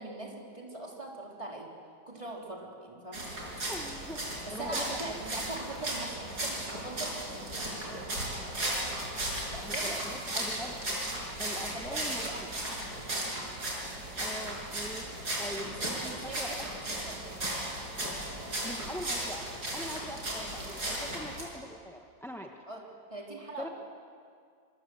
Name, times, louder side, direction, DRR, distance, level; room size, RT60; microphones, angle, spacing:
voice 1, 0.0-1.7 2.1-3.3 4.4-8.0 8.5-8.9 9.3-10.2 11.4-12.7 13.1-13.4 15.6-17.2 18.5-18.8 20.4-20.6 22.7-23.7, right 2 dB, 15° right, -1 dB, 3.7 m, -43 dB
sound 1, 3.1-21.4, right 1 dB, 55° right, 6.1 m, -36 dB
voice 2, 3.7-5.2 9.6-10.7 11.4-12.2 14.1-16.7 18.6-19.5 19.7-22.5 23.6-23.7, equal, ahead, 2 dB, 0.9 m, -42 dB
26.0 x 25.0 x 7.9 m, 2.2 s
omnidirectional pair, 2.1 m